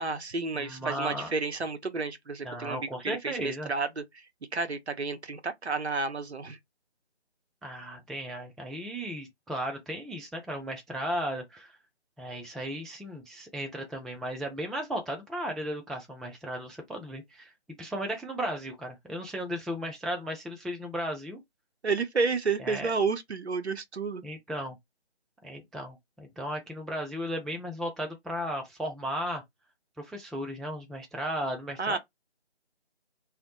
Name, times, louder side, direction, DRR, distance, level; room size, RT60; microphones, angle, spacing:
voice 1, 0.0-4.3 4.5-6.6 21.8-24.2 31.8-32.0, right 4 dB, 75° right, 0.7 m, -31 dB
voice 2, 0.5-1.3 2.4-3.7 7.6-11.7 12.2-17.5 17.8-21.4 22.6-22.9 24.2-24.8 25.4-29.4 30.0-32.0, equal, ahead, 0.3 m, -35 dB
2.2 x 2.0 x 2.8 m
figure-of-eight pair, 165°, 34 cm